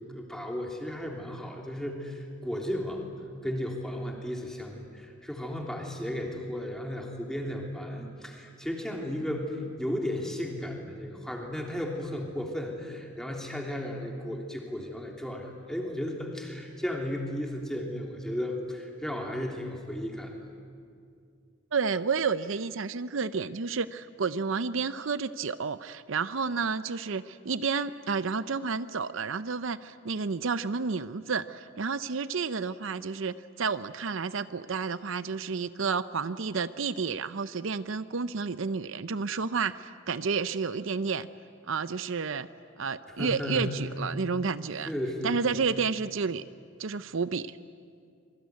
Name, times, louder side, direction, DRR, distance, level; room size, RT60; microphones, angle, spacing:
voice 1, 0.1-3.0 3.4-20.3 43.1-43.7 44.8-45.4, left 1 dB, 5° left, 0 dB, 3.2 m, -34 dB
voice 2, 21.7-41.3 41.6-42.5 42.8-44.9 45.2-46.4 46.8-47.6, right 5 dB, 70° right, 14 dB, 0.6 m, -31 dB
26.5 x 23.0 x 9.5 m, 2.3 s
head